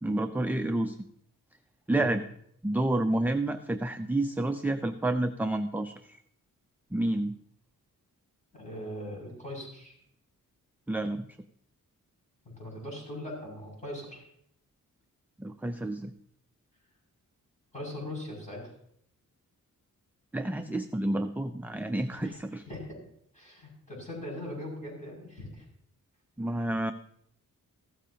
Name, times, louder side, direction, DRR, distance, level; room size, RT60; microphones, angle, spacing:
voice 1, 0.0-1.0 1.9-2.2 2.6-6.2 6.9-7.3 10.9-11.3 15.4-16.1 20.3-22.6 26.4-26.9, right 1 dB, 5° right, 7 dB, 0.4 m, -29 dB
voice 2, 8.5-10.0 12.4-14.2 17.7-18.7 22.2-22.4 22.6-23.0 23.3-25.6, left 1 dB, 20° left, -3 dB, 6.2 m, -40 dB
15.0 x 13.5 x 2.8 m, 0.69 s
wide cardioid pair, 145°, 34 cm